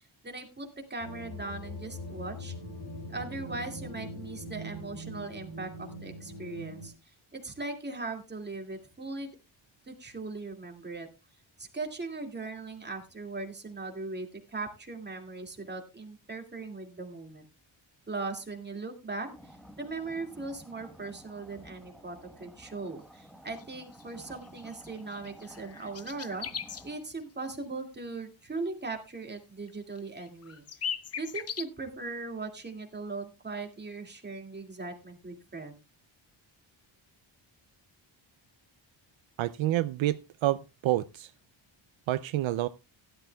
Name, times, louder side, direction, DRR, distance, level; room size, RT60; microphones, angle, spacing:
voice 1, 0.0-2.5 3.1-9.3 9.9-11.1 11.6-17.4 18.1-26.5 26.8-35.8, right 3 dB, 20° right, 2.2 m, -39 dB
sound 1, 1.0-6.9, left 1 dB, 50° left, 3.7 m, -42 dB
sound 2, 19.3-27.0, right 1 dB, ahead, 1.1 m, -52 dB
sound 3, 23.5-23.6 23.9-26.9 29.3-29.4 29.7-29.8 30.0-31.7, left 7 dB, 30° left, 0.6 m, -39 dB
voice 2, 39.4-41.3 42.1-42.7, right 14 dB, 70° right, 0.5 m, -28 dB
16.0 x 11.5 x 2.3 m
wide cardioid pair, 145°, 48 cm